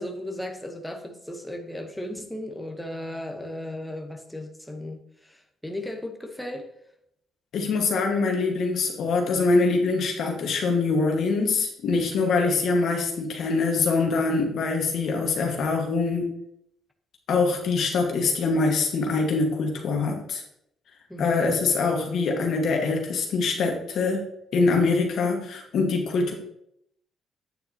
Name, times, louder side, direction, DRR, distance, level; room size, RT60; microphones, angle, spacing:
voice 1, 0.0-6.7 21.1-21.6, left 1 dB, 5° left, 2 dB, 1.0 m, -36 dB
voice 2, 7.5-16.3 17.3-20.4 21.2-24.3 24.5-26.3, left 4 dB, 70° left, 2 dB, 1.5 m, -24 dB
8.9 x 6.9 x 2.8 m, 0.75 s
cardioid pair, 90°, 0 cm